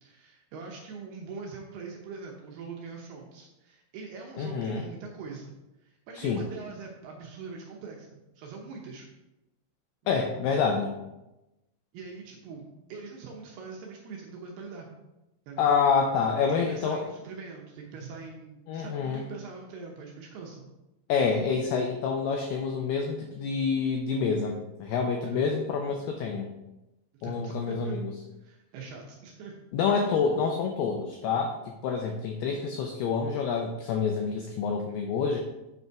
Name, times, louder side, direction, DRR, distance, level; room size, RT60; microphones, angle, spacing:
voice 1, 0.0-5.5 5.8-9.1 10.1-10.3 11.9-14.9 15.5-15.7 16.7-20.7 25.2-25.4 27.2-28.0 28.4-29.5, right 4 dB, 75° right, 0 dB, 2.5 m, -43 dB
voice 2, 4.4-4.8 6.2-6.4 10.1-10.9 15.6-17.0 18.7-19.2 21.1-26.5 27.2-28.1 29.7-35.4, left 5 dB, 85° left, 3 dB, 2.3 m, -27 dB
8.0 x 5.5 x 4.7 m, 0.97 s
omnidirectional pair, 5.4 m